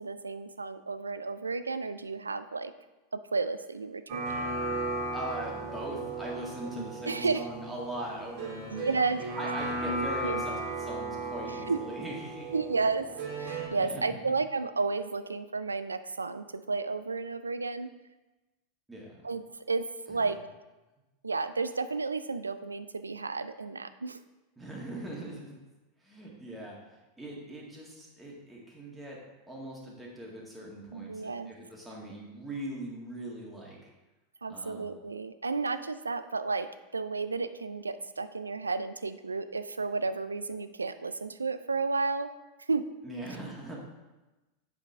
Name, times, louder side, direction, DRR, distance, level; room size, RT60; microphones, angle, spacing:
voice 1, 0.0-2.7 3.3-4.5 6.6-7.4 8.7-9.2 9.8-10.4 11.5-11.8 12.5-13.1 13.3-17.9 19.2-20.4 21.2-24.2 30.9-31.5 34.4-36.7 36.9-42.3 42.7-42.8, right 4 dB, 85° right, 11 dB, 0.3 m, -32 dB
sound 1, 4.1-13.7, right 2 dB, 50° right, 1.9 m, -36 dB
voice 2, 5.1-9.0 9.4-12.5 13.7-14.3 18.9-19.3 20.1-20.3 24.6-25.6 26.0-26.8 27.2-29.2 29.5-33.9 34.5-34.9 43.0-43.8, right 1 dB, 10° right, -4 dB, 1.9 m, -41 dB
7.7 x 5.1 x 3.4 m, 1.1 s
figure-of-eight pair, 90°, 0 cm